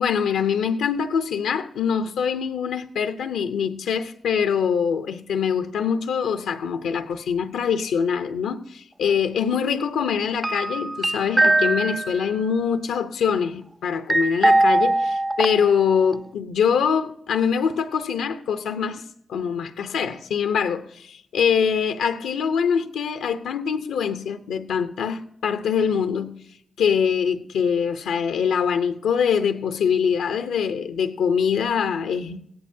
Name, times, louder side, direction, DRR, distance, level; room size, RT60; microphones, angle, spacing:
voice 1, 0.0-19.0 19.3-26.4 26.8-32.4, left 7 dB, 85° left, 0.6 m, -24 dB
sound 1, 10.4-12.3 14.1-15.9 16.1-16.2, right 2 dB, 15° right, 0.3 m, -21 dB
16.5 x 13.5 x 2.7 m
supercardioid pair, 45°, 0 cm